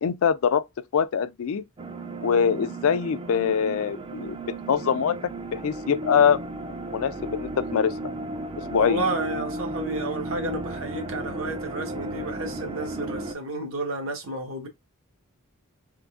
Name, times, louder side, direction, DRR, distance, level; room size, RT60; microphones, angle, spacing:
voice 1, 0.0-1.6 2.2-4.4 4.7-5.2 5.5-6.4 6.9-8.0 8.7-9.0, left 7 dB, 65° left, 0.4 m, -23 dB
sound 1, 1.8-13.3, right 2 dB, 25° right, 0.4 m, -34 dB
voice 2, 8.7-14.7, right 2 dB, 65° right, 1.1 m, -31 dB
3.7 x 3.4 x 2.4 m
head